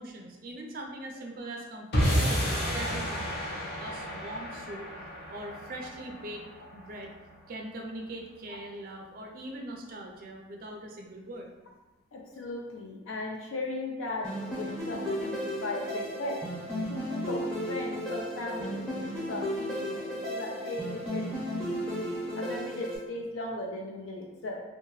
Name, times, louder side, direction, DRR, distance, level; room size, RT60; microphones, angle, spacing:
voice 1, 0.0-4.9 5.3-6.4 6.7-7.1 7.5-11.5, right 1 dB, 45° right, 1 dB, 0.3 m, -41 dB
sound 1, 1.9-8.3, equal, 55° left, 0.7 m, -32 dB
voice 2, 12.1-16.4 16.9-21.8 22.4-24.6, left 2 dB, 90° left, -1 dB, 0.4 m, -37 dB
sound 2, 14.2-23.0, equal, 5° left, 0.6 m, -34 dB
2.7 x 2.1 x 3.0 m, 1.1 s
head